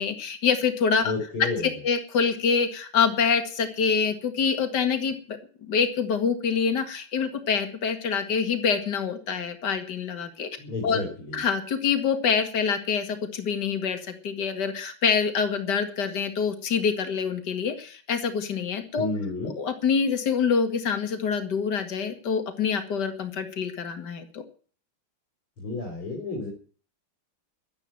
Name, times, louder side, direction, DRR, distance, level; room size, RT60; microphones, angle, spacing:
voice 1, 0.0-1.1 1.4-1.5 1.8-5.4 5.7-10.5 10.8-11.0 11.3-19.1 19.6-24.4, left 6 dB, 55° left, 7 dB, 2.5 m, -26 dB
voice 2, 1.0-1.7 10.6-11.4 19.0-19.5 25.6-26.5, left 3 dB, 85° left, 1 dB, 4.8 m, -31 dB
12.5 x 10.5 x 9.2 m, 0.43 s
omnidirectional pair, 2.3 m